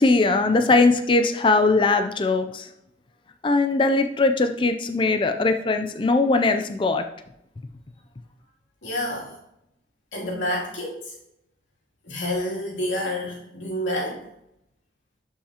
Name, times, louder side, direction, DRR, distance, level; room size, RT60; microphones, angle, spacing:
voice 1, 0.0-2.7 3.4-7.0, left 3 dB, 25° left, 7 dB, 0.4 m, -20 dB
voice 2, 8.8-9.4 10.1-11.2 12.0-14.2, left 1 dB, 90° left, -4 dB, 2.7 m, -28 dB
11.5 x 5.5 x 2.9 m, 0.82 s
head